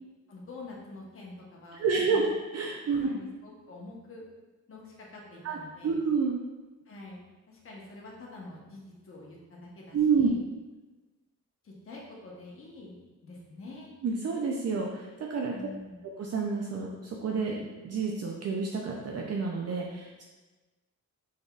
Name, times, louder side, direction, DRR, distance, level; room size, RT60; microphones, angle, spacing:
voice 1, 0.3-2.3 2.9-4.2 4.7-6.1 6.9-10.4 11.6-13.0 13.2-13.9 15.5-16.0, left 2 dB, 45° left, -3 dB, 1.1 m, -46 dB
voice 2, 1.8-3.1 5.4-5.6 5.8-6.4 9.9-10.3 14.0-15.5 16.2-20.2, right 5 dB, 55° right, -1 dB, 0.5 m, -29 dB
6.3 x 3.4 x 2.4 m, 1.2 s
wide cardioid pair, 140°, 29 cm